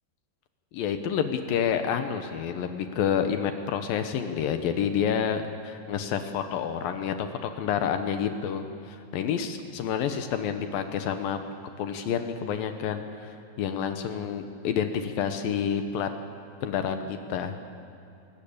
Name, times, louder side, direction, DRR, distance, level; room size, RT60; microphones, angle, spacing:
voice 1, 0.7-11.4 11.8-16.1 16.6-17.5, left 8 dB, 75° left, 7 dB, 2.2 m, -29 dB
21.0 x 19.0 x 8.6 m, 2.7 s
omnidirectional pair, 5.2 m